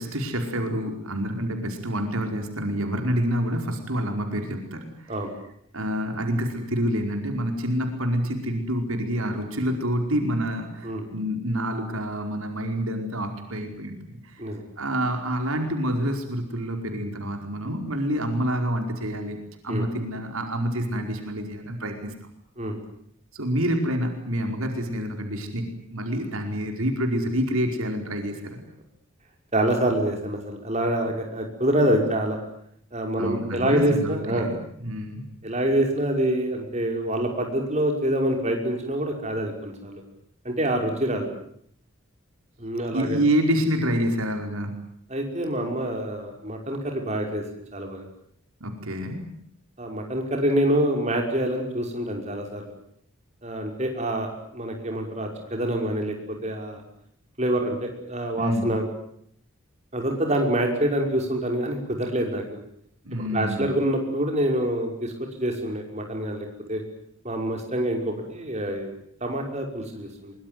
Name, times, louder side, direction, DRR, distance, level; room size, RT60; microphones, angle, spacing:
voice 1, 0.0-5.2 5.7-14.4 14.8-19.4 19.6-22.1 23.3-28.6 33.2-35.3 42.9-44.8 48.6-49.3 58.4-58.7 63.0-63.7, equal, 75° right, 4 dB, 4.9 m, -27 dB
voice 2, 29.5-32.4 32.9-34.5 35.4-40.0 40.4-41.3 42.6-43.2 45.1-47.4 47.7-48.1 49.8-52.6 53.4-56.8 57.4-58.8 59.9-62.4 63.2-66.8 67.2-68.9 69.2-70.3, right 1 dB, 30° right, 2 dB, 5.9 m, -26 dB
24.0 x 24.0 x 9.4 m, 0.67 s
head